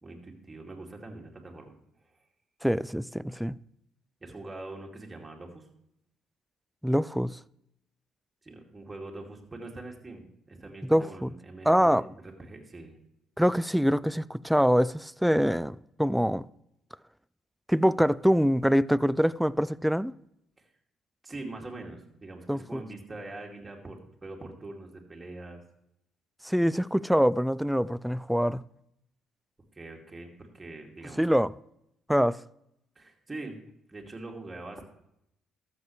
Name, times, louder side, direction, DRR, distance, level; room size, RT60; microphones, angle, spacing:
voice 1, 0.0-1.7 4.2-5.6 8.4-12.9 20.6-20.7 21.2-25.6 29.7-31.2 33.0-33.5 33.9-34.8, right 2 dB, 20° right, 2.5 m, -43 dB
voice 2, 2.6-3.6 6.8-7.4 10.9-11.3 11.7-12.1 13.4-16.5 17.7-20.1 22.5-22.8 26.4-28.6 31.2-31.5 32.1-32.4, equal, 5° right, 0.3 m, -24 dB
13.0 x 7.3 x 3.2 m
hypercardioid pair, 55°, 0 cm